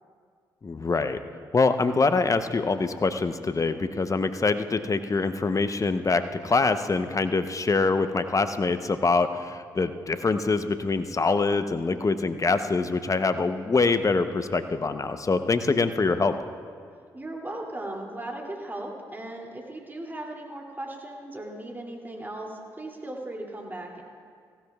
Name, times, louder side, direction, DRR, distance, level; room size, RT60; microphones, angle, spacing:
voice 1, 0.6-1.2 1.5-16.3, left 3 dB, 35° left, 10 dB, 0.8 m, -24 dB
voice 2, 17.1-24.0, right 1 dB, 20° right, 0 dB, 2.7 m, -37 dB
19.0 x 16.0 x 2.4 m, 2.1 s
hypercardioid pair, 40°, 10 cm